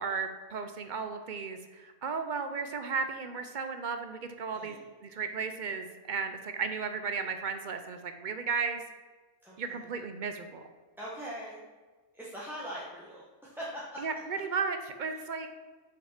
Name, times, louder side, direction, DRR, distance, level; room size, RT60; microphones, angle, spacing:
voice 1, 0.0-8.8 9.6-10.7 14.0-15.5, right 5 dB, 55° right, 7 dB, 0.5 m, -35 dB
voice 2, 4.5-4.8 9.4-9.9 11.0-11.6 12.1-14.0 15.1-15.2, equal, ahead, -7 dB, 1.1 m, -42 dB
6.1 x 6.0 x 5.8 m, 1.4 s
omnidirectional pair, 1.5 m